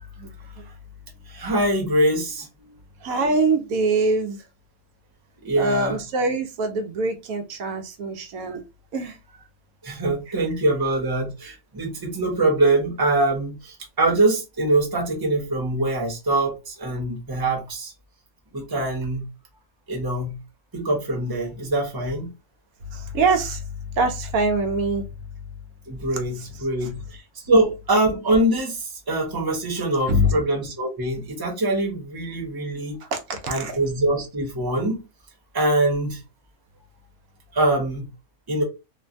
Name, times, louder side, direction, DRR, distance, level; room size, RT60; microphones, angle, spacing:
voice 1, 0.2-0.7 3.0-4.4 5.6-8.6 8.9-9.2 10.3-10.4 22.9-25.1 26.8-26.9 30.1-30.3 33.0-33.8, right 2 dB, 85° right, 1.1 m, -24 dB
voice 2, 1.3-2.7 5.4-6.0 9.8-17.9 18.5-19.3 19.9-20.4 20.7-22.3 25.9-27.2 27.5-33.0 33.5-35.0 35.5-36.2 37.5-38.1 38.5-38.6, right 2 dB, 20° right, 0.8 m, -23 dB
3.1 x 2.2 x 2.5 m
omnidirectional pair, 1.4 m